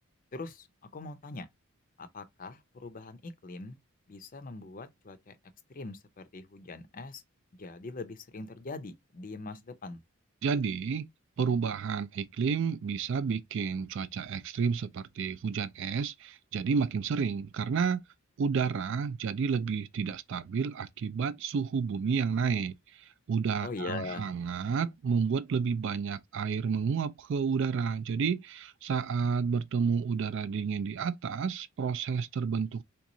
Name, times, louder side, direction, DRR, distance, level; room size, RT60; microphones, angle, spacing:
voice 1, 0.3-0.7 0.9-1.5 2.0-3.8 4.1-5.4 5.7-7.2 7.6-10.0 23.6-24.3, left 3 dB, 40° left, 0.5 m, -41 dB
voice 2, 10.4-11.1 11.4-18.0 18.4-32.8, right 6 dB, 55° right, 0.3 m, -30 dB
3.5 x 3.0 x 2.6 m
head